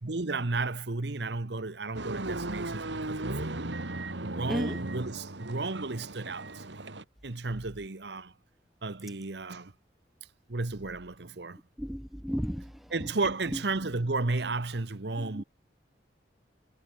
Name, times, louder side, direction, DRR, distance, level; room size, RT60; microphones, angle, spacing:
voice 1, 0.0-3.7 4.2-6.8 7.2-8.3 8.8-9.7 10.5-11.6 12.9-15.4, right 3 dB, 70° right, 1.1 m, -33 dB
sound 1, 1.9-7.0, right 2 dB, 85° right, 2.4 m, -36 dB
voice 2, 11.8-12.7 15.3-15.4, equal, ahead, 0.7 m, -33 dB
head